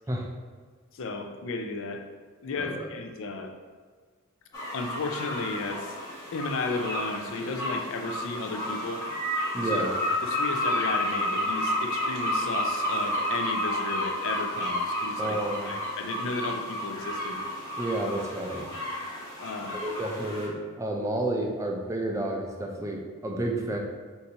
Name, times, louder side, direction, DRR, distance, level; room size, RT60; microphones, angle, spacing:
voice 1, 0.9-2.0 2.4-3.5 4.7-6.0 6.3-9.0 9.6-9.8 10.2-15.4 15.7-17.4 19.4-19.8, left 3 dB, 60° left, 5 dB, 0.4 m, -34 dB
voice 2, 2.6-2.9 9.5-9.9 15.2-15.7 17.8-18.7 19.7-23.8, right 1 dB, 15° right, 0 dB, 0.4 m, -31 dB
sound 1, 4.5-20.5, equal, 15° left, 0.8 m, -31 dB
5.7 x 2.6 x 2.7 m, 1.5 s
head